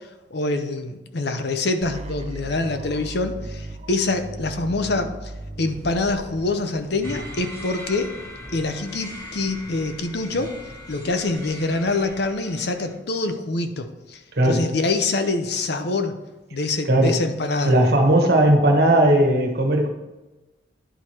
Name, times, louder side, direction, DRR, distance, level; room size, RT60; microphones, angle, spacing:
voice 1, 0.3-5.3 5.6-8.1 8.5-10.5 10.9-16.1 16.5-17.8, left 3 dB, 65° left, 7 dB, 0.8 m, -25 dB
sound 1, 1.8-7.8, right 2 dB, 35° right, 0.7 m, -37 dB
sound 2, 5.6-12.3, equal, 35° left, 2.0 m, -43 dB
sound 3, 7.0-12.9, equal, 15° left, 1.8 m, -41 dB
voice 2, 14.4-14.7 16.9-17.2 17.6-19.9, right 1 dB, 60° right, 2 dB, 1.4 m, -17 dB
10.5 x 4.7 x 4.4 m, 1.1 s
head